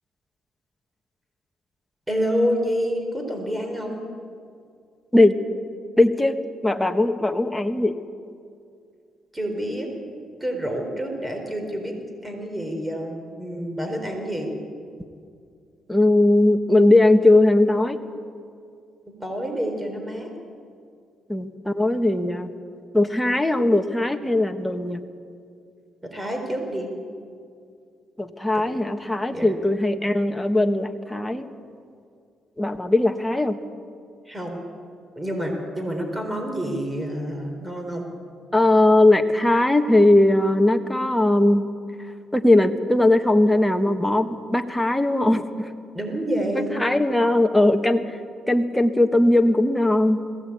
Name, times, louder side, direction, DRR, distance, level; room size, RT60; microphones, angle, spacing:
voice 1, 2.1-4.0 9.3-9.9 10.4-12.0 12.2-14.5 19.1-20.3 26.0-26.9 28.5-28.8 29.3-29.5 34.3-34.6 35.2-38.1 45.9-46.7, equal, 10° right, 3 dB, 4.1 m, -28 dB
voice 2, 6.0-8.0 15.9-18.0 21.3-22.5 22.9-25.0 28.2-31.5 32.6-33.6 38.5-41.7 42.3-45.7 46.7-48.1 48.5-50.2, left 1 dB, 5° left, 5 dB, 1.4 m, -19 dB
21.5 x 17.0 x 8.7 m, 2.3 s
cardioid pair, 90°, 0 cm